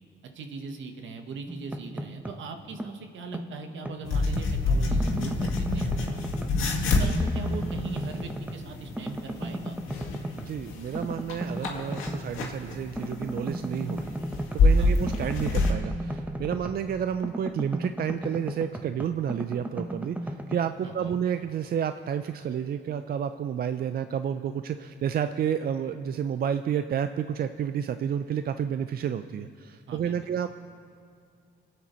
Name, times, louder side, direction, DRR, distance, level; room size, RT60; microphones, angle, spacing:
voice 1, 0.3-6.5 6.8-9.8 14.8-15.0 20.8-21.2 29.9-30.1, right 4 dB, 70° right, 5 dB, 1.4 m, -40 dB
sound 1, 1.5-2.5 2.8-4.5 4.9-6.7 7.0-8.7 9.0-10.6 10.9-12.6 13.0-16.9 17.2-20.6, right 1 dB, 10° right, 0.9 m, -35 dB
sound 2, 4.0-15.7, left 3 dB, 85° left, 1.9 m, -28 dB
voice 2, 10.3-14.2 14.5-30.5, right 8 dB, 50° right, 10 dB, 0.5 m, -30 dB
26.0 x 8.8 x 4.4 m, 2.3 s
cardioid pair, 90°, 20 cm